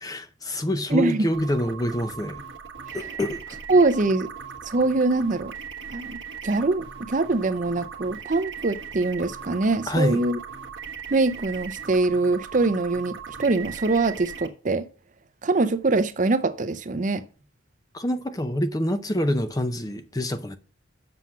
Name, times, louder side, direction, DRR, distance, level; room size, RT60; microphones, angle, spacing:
voice 1, 0.0-2.4 2.9-3.6 9.9-10.2 17.9-20.6, equal, 20° left, 0.6 m, -26 dB
voice 2, 0.9-1.3 3.7-4.3 4.7-5.5 5.9-6.2 6.4-10.4 11.1-14.9 15.4-17.2, right 3 dB, 40° right, 0.5 m, -23 dB
sound 1, 1.3-14.5, right 7 dB, 60° right, 1.4 m, -39 dB
7.8 x 5.8 x 5.9 m
head